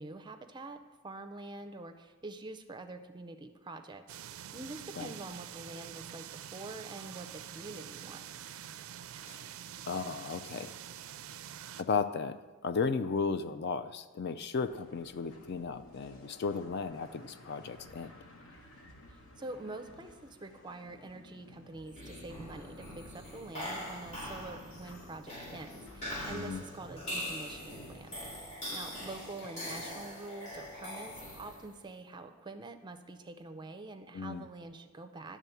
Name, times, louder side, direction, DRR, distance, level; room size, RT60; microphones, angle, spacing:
voice 1, 0.0-8.3 19.1-35.4, right 2 dB, 20° right, 8 dB, 0.5 m, -46 dB
sound 1, 4.1-11.8, right 10 dB, 85° right, 0.4 m, -46 dB
voice 2, 9.8-10.8 11.8-18.2 26.3-26.6 34.1-34.5, left 5 dB, 50° left, 11 dB, 0.4 m, -35 dB
sound 2, 14.7-28.4, left 1 dB, 70° left, 1.1 m, -55 dB
sound 3, 21.9-31.8, left 1 dB, 35° left, 2.2 m, -42 dB
10.5 x 3.6 x 6.9 m, 1.3 s
head